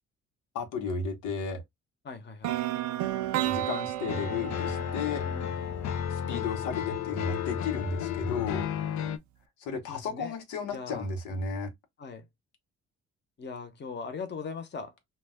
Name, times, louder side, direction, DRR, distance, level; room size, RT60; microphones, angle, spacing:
voice 1, 0.5-1.6 3.4-5.3 6.1-8.7 9.6-11.7, left 4 dB, 85° left, 0.8 m, -34 dB
voice 2, 2.0-2.6 5.3-5.6 9.9-10.3 10.7-11.1 12.0-12.3 13.4-14.9, left 5 dB, 35° left, 0.8 m, -40 dB
sound 1, 2.4-6.4, right 14 dB, 70° right, 0.5 m, -33 dB
sound 2, 4.1-9.2, left 9 dB, 65° left, 0.5 m, -32 dB
2.2 x 2.2 x 3.5 m
cardioid pair, 90°, 30 cm